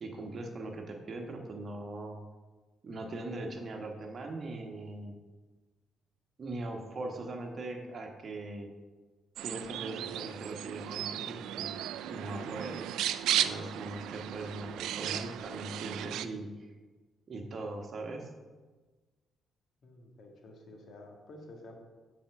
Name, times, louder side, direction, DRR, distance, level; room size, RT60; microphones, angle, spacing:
voice 1, 0.0-2.2 2.8-5.2 6.4-8.7 9.4-11.8 12.1-12.9 13.4-16.5 17.3-18.3, right 2 dB, 45° right, 3 dB, 1.2 m, -40 dB
sound 1, 9.4-16.3, right 11 dB, 85° right, 0.3 m, -35 dB
voice 2, 19.8-21.8, left 1 dB, 60° left, 1 dB, 1.7 m, -51 dB
7.3 x 4.4 x 5.9 m, 1.3 s
cardioid pair, 90°, 0 cm